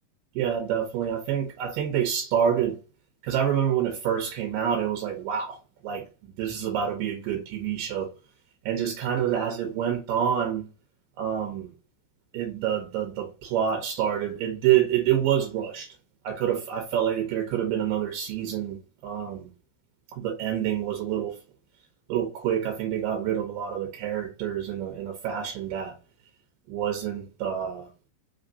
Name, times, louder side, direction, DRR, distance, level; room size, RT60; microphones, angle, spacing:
voice 1, 0.4-2.8 3.2-5.6 5.8-6.1 6.4-8.1 8.7-10.7 11.2-11.7 12.3-16.0 16.2-19.5 20.2-21.4 22.1-26.0 26.7-27.9, right 9 dB, 75° right, 2.3 m, -27 dB
5.3 x 3.3 x 2.6 m
omnidirectional pair, 4.1 m